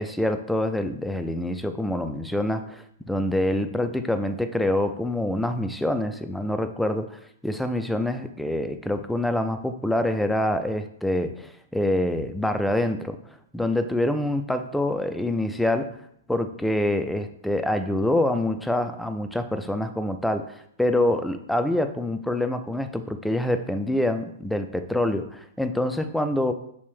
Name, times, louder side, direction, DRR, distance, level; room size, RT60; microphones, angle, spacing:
voice 1, 0.0-13.2 13.5-15.9 16.3-26.5, left 1 dB, ahead, 7 dB, 0.3 m, -26 dB
6.0 x 2.6 x 3.4 m, 0.71 s
figure-of-eight pair, 110°, 0 cm